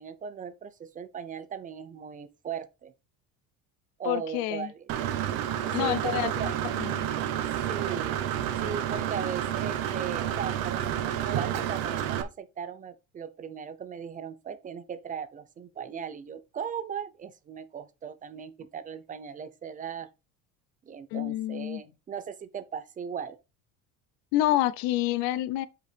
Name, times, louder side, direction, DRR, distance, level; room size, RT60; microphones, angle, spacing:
voice 1, 0.0-2.9 4.0-5.2 5.8-6.5 7.7-8.2 8.6-20.1 20.9-23.4, right 7 dB, 20° right, 0.7 m, -38 dB
voice 2, 4.0-4.7 5.7-6.3 6.8-7.1 21.1-21.8 24.3-25.7, left 14 dB, 90° left, 0.7 m, -28 dB
Engine / Mechanisms, 4.9-12.2, right 10 dB, 75° right, 1.2 m, -30 dB
8.0 x 5.4 x 3.4 m
cardioid pair, 160°, 35 cm